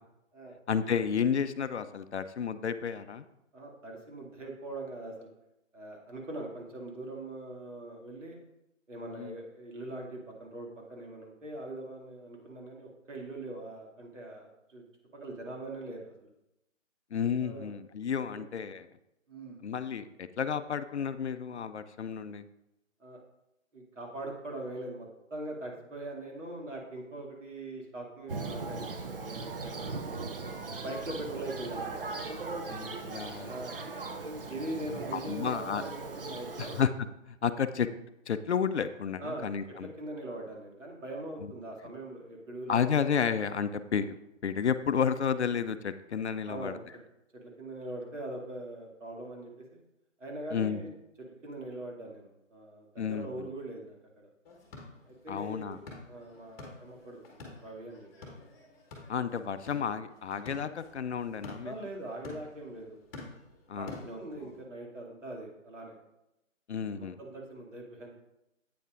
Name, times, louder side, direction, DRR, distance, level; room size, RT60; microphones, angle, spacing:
voice 1, 0.7-3.3 9.1-9.3 17.1-18.9 19.6-22.4 32.7-33.5 35.1-35.8 36.6-36.9 37.3-37.9 38.3-39.9 41.4-41.5 42.7-44.2 44.4-46.8 50.5-50.8 53.0-53.5 55.3-55.8 59.1-61.9 63.7-63.9 66.7-67.2, left 7 dB, 60° left, 11 dB, 0.5 m, -31 dB
voice 2, 3.5-5.3 5.7-8.5 8.9-14.8 15.1-16.3 17.4-17.7 18.3-18.4 19.3-19.6 23.0-23.2 23.7-30.0 30.8-32.0 33.4-33.9 34.5-36.8 39.2-42.9 43.2-43.4 46.5-47.0 47.4-49.8 50.2-50.9 51.2-54.3 55.1-58.5 61.6-63.0 63.8-66.0 67.0-68.1, right 2 dB, 70° right, -1 dB, 2.4 m, -42 dB
Thunder, 28.3-36.8, right 3 dB, 45° right, 0.6 m, -39 dB
sound 1, 54.4-64.6, left 2 dB, 15° left, 1.3 m, -49 dB
8.5 x 8.0 x 2.5 m, 0.88 s
figure-of-eight pair, 160°, 39 cm